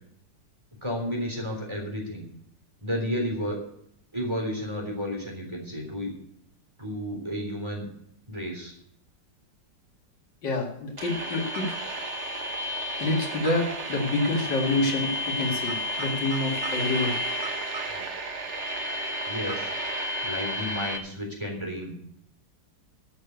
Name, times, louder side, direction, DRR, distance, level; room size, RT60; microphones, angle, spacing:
voice 1, 0.8-2.2 2.8-3.6 4.1-6.1 6.8-7.9 8.3-8.7 17.9-18.0 19.3-19.7 20.2-22.0, equal, 15° right, 0 dB, 3.6 m, -32 dB
voice 2, 10.4-11.7 13.0-17.2, left 2 dB, 80° left, 1 dB, 2.7 m, -27 dB
sound 1, 11.0-21.0, equal, 45° right, 1.4 m, -32 dB
12.5 x 6.6 x 8.1 m, 0.70 s
omnidirectional pair, 1.9 m